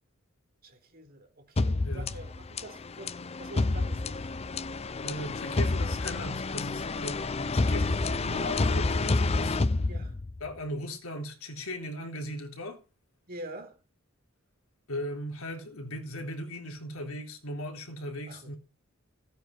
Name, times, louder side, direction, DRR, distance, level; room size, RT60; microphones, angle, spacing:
voice 1, 0.6-4.3 7.2-7.4 9.9-10.2 13.3-13.8 18.3-18.6, right 1 dB, 45° right, 4.3 m, -46 dB
sound 1, 1.6-10.5, left 3 dB, 30° left, 0.6 m, -29 dB
voice 2, 5.0-9.6 10.4-12.8 14.9-18.6, left 1 dB, 80° left, 3.6 m, -38 dB
16.0 x 9.1 x 5.8 m
head